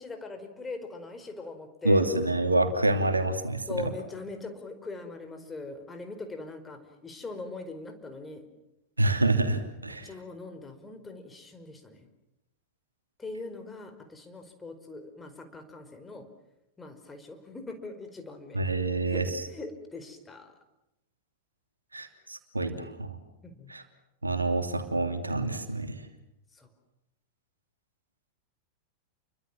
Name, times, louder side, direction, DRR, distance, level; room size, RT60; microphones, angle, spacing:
voice 1, 0.0-2.1 3.7-8.4 9.9-12.1 13.2-16.3 16.8-18.6 19.0-20.5 23.4-23.7 26.5-26.7, left 3 dB, 15° left, 7 dB, 4.8 m, -41 dB
voice 2, 1.8-3.9 9.0-10.1 18.5-19.4 21.9-23.2 23.7-23.8 24.2-26.0, right 2 dB, 80° right, 7 dB, 2.9 m, -27 dB
29.5 x 24.5 x 7.4 m, 0.86 s
figure-of-eight pair, 90°, 0 cm